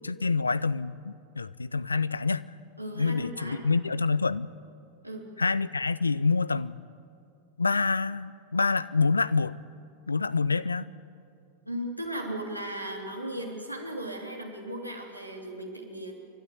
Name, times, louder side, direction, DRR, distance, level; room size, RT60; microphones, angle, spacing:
voice 1, 0.0-2.5 2.9-4.5 5.4-6.7 7.6-9.5 10.1-10.9, left 4 dB, 80° left, 0.5 m, -27 dB
voice 2, 2.8-3.7 5.0-5.3 11.6-16.1, right 1 dB, 90° right, 3.0 m, -36 dB
28.5 x 13.0 x 9.4 m
figure-of-eight pair, 90°, 0 cm